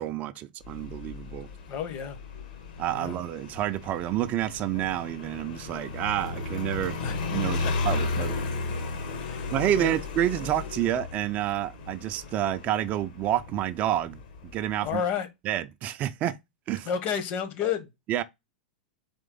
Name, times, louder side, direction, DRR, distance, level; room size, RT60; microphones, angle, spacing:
voice 1, 0.0-1.5 2.8-7.0 7.3-8.4 9.5-14.2 14.5-15.0 15.5-16.4 16.7-16.9 18.1-18.2, right 12 dB, 35° right, 0.4 m, -29 dB
Motorcycle, 0.6-14.9, left 3 dB, 60° left, 1.2 m, -35 dB
voice 2, 1.7-2.2 2.9-3.2 7.0-7.2 7.6-7.7 8.1-8.5 9.2-10.0 14.8-15.3 16.8-17.9, left 8 dB, 40° left, 1.0 m, -31 dB
4.3 x 3.1 x 3.8 m
figure-of-eight pair, 95°, 5 cm